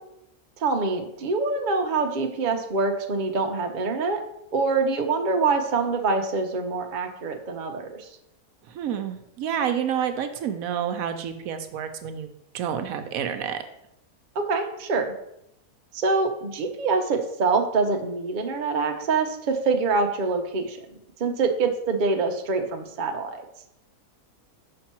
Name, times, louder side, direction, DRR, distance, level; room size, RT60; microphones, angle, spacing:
voice 1, 0.6-4.2 4.5-8.1 14.3-15.1 15.9-20.8 21.2-23.4, right 4 dB, 50° right, 4 dB, 0.6 m, -25 dB
voice 2, 8.7-12.3 12.5-13.6, right 8 dB, 75° right, 8 dB, 1.0 m, -29 dB
5.7 x 5.3 x 4.3 m, 0.79 s
omnidirectional pair, 1.6 m